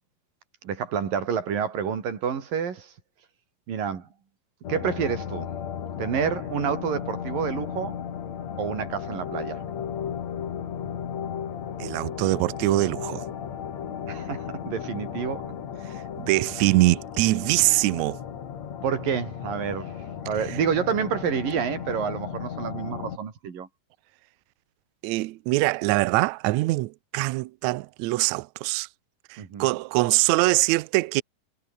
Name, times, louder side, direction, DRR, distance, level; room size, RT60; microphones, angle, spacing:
voice 1, 0.6-2.9 3.7-4.1 4.7-5.5 6.0-8.0 8.6-9.6 14.1-15.5 18.8-23.7 29.4-29.7, right 7 dB, 75° right, 5.0 m, -29 dB
sound 1, 4.6-23.2, left 8 dB, 55° left, 3.2 m, -35 dB
voice 2, 11.8-13.3 16.2-18.2 25.0-28.9 29.3-31.2, right 20 dB, 90° right, 1.6 m, -23 dB
omnidirectional pair, 4.0 m